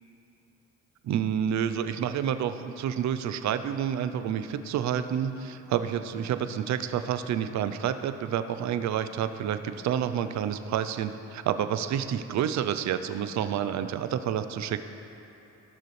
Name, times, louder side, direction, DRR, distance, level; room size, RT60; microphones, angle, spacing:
voice 1, 1.0-14.8, right 9 dB, 65° right, 10 dB, 0.6 m, -29 dB
16.5 x 6.7 x 3.3 m, 2.9 s
cardioid pair, 90°, 30 cm